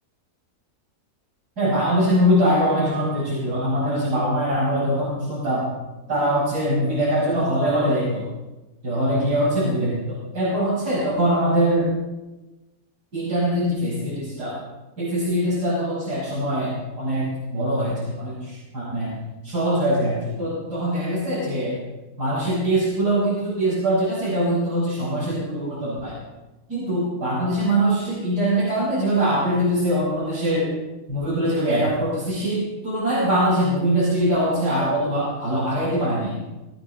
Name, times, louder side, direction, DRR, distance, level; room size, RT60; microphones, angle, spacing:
voice 1, 1.6-5.6 6.1-8.3 8.8-11.9 13.1-14.6 15.0-19.2 19.4-21.8 22.2-26.2 26.7-30.7 31.1-36.4, equal, 90° right, -9 dB, 6.6 m, -22 dB
20.0 x 17.0 x 3.9 m, 1.1 s
omnidirectional pair, 1.7 m